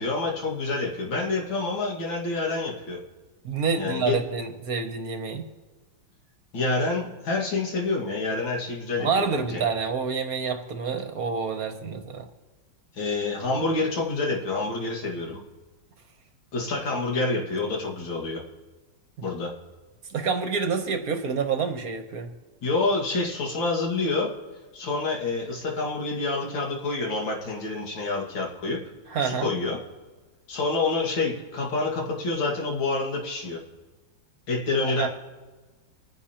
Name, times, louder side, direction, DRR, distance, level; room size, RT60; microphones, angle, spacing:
voice 1, 0.0-3.0 3.8-4.2 6.5-9.6 12.9-15.4 16.5-18.4 19.2-19.5 22.6-24.3 24.7-28.8 29.2-29.8 30.5-33.6 34.5-35.1, left 3 dB, 80° left, -1 dB, 2.7 m, -27 dB
voice 2, 3.4-5.4 9.0-12.3 19.2-19.3 20.1-22.3 29.1-29.5 35.0-35.1, right 5 dB, 55° right, 6 dB, 1.3 m, -28 dB
26.0 x 10.0 x 2.9 m, 1.3 s
omnidirectional pair, 2.1 m